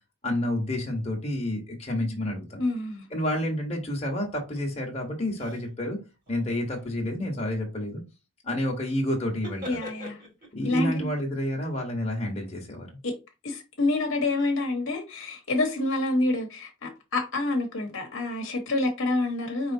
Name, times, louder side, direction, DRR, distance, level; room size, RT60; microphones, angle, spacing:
voice 1, 0.2-2.6 3.1-6.0 6.3-8.0 8.4-9.8 10.5-13.0, left 1 dB, 30° left, 1.1 m, -29 dB
voice 2, 2.5-3.1 9.6-10.2 10.6-11.1 13.0-13.1 13.4-19.7, left 2 dB, 60° left, 1.0 m, -27 dB
sound 1, 4.3-4.6 5.3-5.7 6.1-6.9 8.8-9.0 9.3-10.7, left 1 dB, 40° right, 1.9 m, -44 dB
4.9 x 3.2 x 2.7 m
head